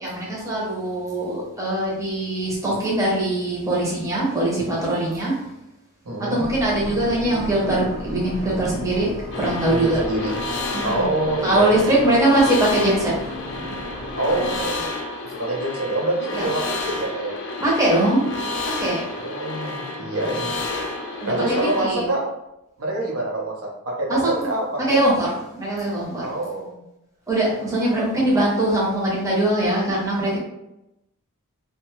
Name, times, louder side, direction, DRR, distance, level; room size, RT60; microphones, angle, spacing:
voice 1, 0.0-5.4 6.2-10.0 10.7-11.1 11.4-13.2 13.5-13.8 16.3-16.5 17.6-18.3 18.7-19.0 21.2-22.0 24.1-24.5 24.8-26.4 27.3-30.4, right 1 dB, 15° right, -5 dB, 0.7 m, -22 dB
voice 2, 6.1-6.5 9.7-10.4 10.8-12.1 14.2-14.9 15.2-17.3 19.1-20.6 21.3-22.2 22.8-25.0 26.2-26.8, right 1 dB, 80° right, -2 dB, 0.7 m, -26 dB
sound 1, 6.4-14.6, equal, 45° right, 0.9 m, -36 dB
sound 2, 9.3-21.9, left 2 dB, 55° left, 0.5 m, -30 dB
2.6 x 2.2 x 3.0 m, 0.89 s
head